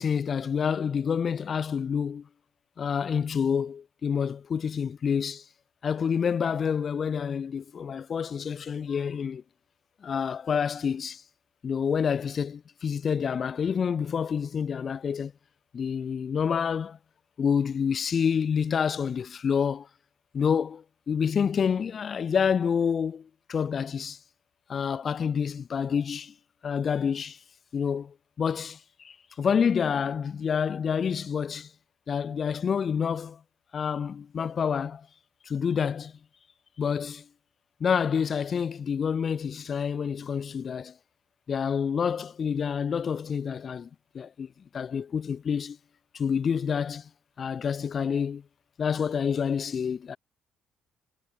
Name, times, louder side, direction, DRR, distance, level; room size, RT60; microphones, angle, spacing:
voice 1, 0.0-2.3 2.8-5.4 5.8-9.4 10.0-11.2 11.6-15.3 15.7-17.0 17.4-19.9 20.3-24.2 24.7-26.3 26.6-27.4 27.7-28.8 29.0-31.7 32.1-33.4 33.7-35.1 35.5-36.2 36.8-37.3 37.8-40.9 41.5-43.9 44.1-44.5 44.7-45.8 46.1-47.1 47.4-48.4 48.8-50.2, left 7 dB, 50° left, 0.4 m, -28 dB
hypercardioid pair, 60°, 0 cm